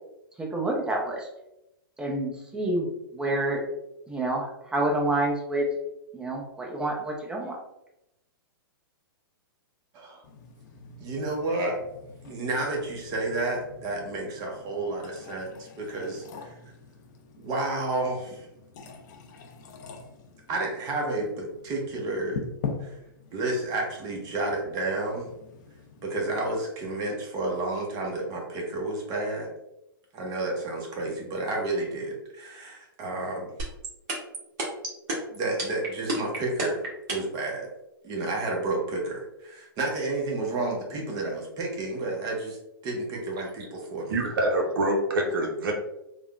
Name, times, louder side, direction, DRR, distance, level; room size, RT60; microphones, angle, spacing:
voice 1, 0.4-1.3 2.0-2.9 3.1-3.6 4.1-5.7 6.1-7.6, right 1 dB, 5° right, -1 dB, 0.6 m, -28 dB
sound 1, 10.2-26.5, left 5 dB, 55° left, 0.5 m, -43 dB
voice 2, 11.0-11.8 12.2-16.5 17.4-18.5 20.5-22.4 22.8-22.9 23.3-25.3 26.0-29.5 30.1-33.5 35.3-36.9 37.1-37.7 38.0-42.6 42.8-44.1, right 2 dB, 30° right, 0 dB, 0.8 m, -31 dB
sound 2, 33.6-37.4, right 2 dB, 50° right, 1.0 m, -29 dB
voice 3, 44.1-45.7, right 1 dB, 65° right, 1 dB, 0.7 m, -25 dB
3.4 x 2.2 x 2.3 m, 0.88 s
hypercardioid pair, 120°, 12 cm